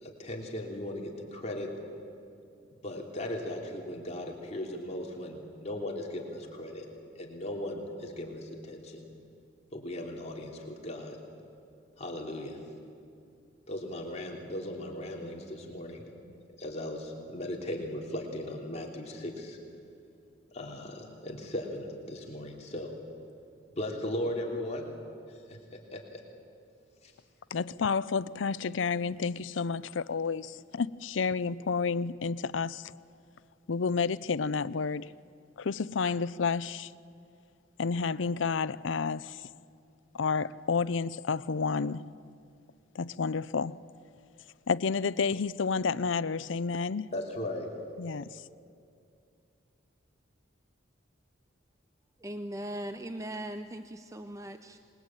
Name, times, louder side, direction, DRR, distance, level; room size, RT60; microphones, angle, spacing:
voice 1, 0.0-1.7 2.8-6.8 7.1-9.1 9.7-11.2 12.0-12.6 13.7-16.0 16.6-19.6 20.5-22.9 23.8-24.9 25.3-25.6 25.9-26.2 27.0-27.1 47.1-47.7, left 1 dB, 35° left, 3.1 m, -37 dB
voice 2, 27.5-32.9 33.7-35.1 35.6-36.9 37.8-39.4 40.1-42.1 42.9-43.8 44.7-47.1 48.0-48.4, left 5 dB, 80° left, 0.6 m, -30 dB
voice 3, 52.2-54.9, right 1 dB, 15° right, 0.7 m, -39 dB
27.0 x 21.0 x 8.9 m
head